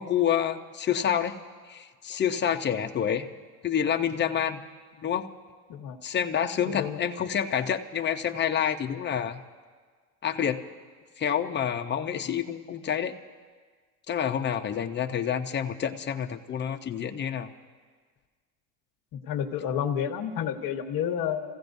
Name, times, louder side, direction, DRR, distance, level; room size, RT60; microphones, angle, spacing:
voice 1, 0.0-1.4 1.7-3.3 3.6-4.6 5.0-5.3 6.0-9.4 10.2-10.6 11.2-13.2 14.1-17.5, left 8 dB, 20° left, 5 dB, 0.7 m, -28 dB
voice 2, 6.6-7.0 12.2-12.3 19.2-21.6, left 8 dB, 45° left, 5 dB, 1.3 m, -30 dB
29.5 x 16.0 x 2.7 m, 1.5 s
supercardioid pair, 125°, 49 cm